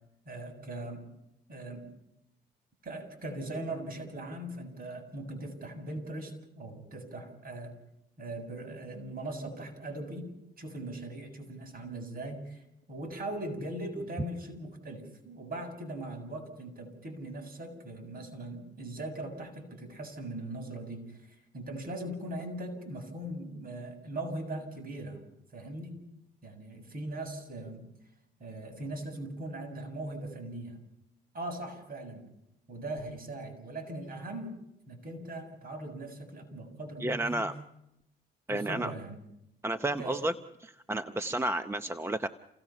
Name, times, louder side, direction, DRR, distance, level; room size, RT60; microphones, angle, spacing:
voice 1, 0.3-1.0 1.5-1.8 2.8-7.8 8.2-10.3 10.6-12.6 12.9-25.2 25.5-26.0 26.4-27.8 28.4-30.8 31.3-32.3 32.7-34.6 34.9-37.5 38.5-39.2 40.0-40.3, right 1 dB, 50° right, 5 dB, 6.8 m, -40 dB
voice 2, 37.0-37.5 38.5-38.9 39.6-40.3 40.6-42.3, right 1 dB, 10° right, 9 dB, 0.8 m, -31 dB
28.5 x 18.0 x 5.8 m, 0.84 s
cardioid pair, 90°, 20 cm